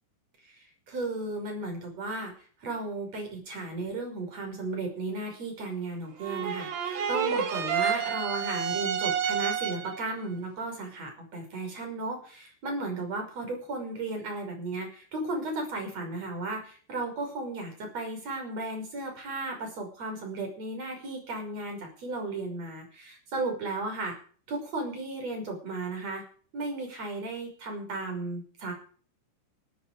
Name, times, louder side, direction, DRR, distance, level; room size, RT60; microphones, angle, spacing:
voice 1, 0.9-2.3 2.6-24.2 24.5-26.2 26.5-28.7, right 2 dB, 30° right, 3 dB, 6.5 m, -35 dB
sound 1, 6.2-10.1, right 7 dB, 55° right, 3.3 m, -29 dB
18.0 x 13.5 x 5.0 m, 0.43 s
omnidirectional pair, 5.9 m